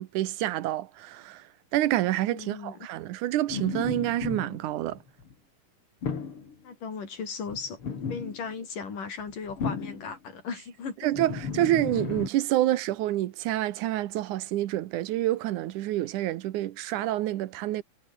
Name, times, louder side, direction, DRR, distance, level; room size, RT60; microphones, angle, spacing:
voice 1, 0.0-5.0 11.0-17.8, right 14 dB, 75° right, 2.4 m, -28 dB
voice 2, 2.3-2.8 6.6-7.8 8.1-11.0, left 5 dB, 85° left, 6.4 m, -37 dB
sound 1, 3.5-5.3 6.0-6.5 7.5-8.5 9.2-10.2 11.1-12.3, left 5 dB, 45° left, 3.6 m, -34 dB
omnidirectional pair, 3.7 m